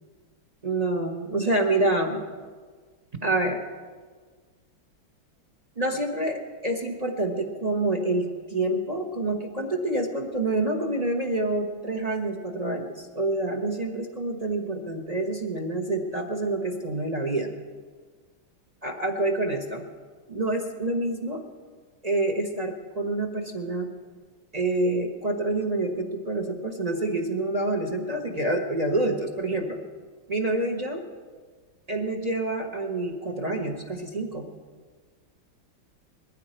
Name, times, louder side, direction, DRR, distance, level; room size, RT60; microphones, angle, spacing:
voice 1, 0.6-2.2 3.2-3.6 5.8-17.5 18.8-19.8 20.3-21.4 22.0-23.9 24.5-29.8 30.3-31.0 31.9-34.5, right 2 dB, 35° right, 2 dB, 0.6 m, -27 dB
20.5 x 14.5 x 4.4 m, 1.5 s
omnidirectional pair, 2.3 m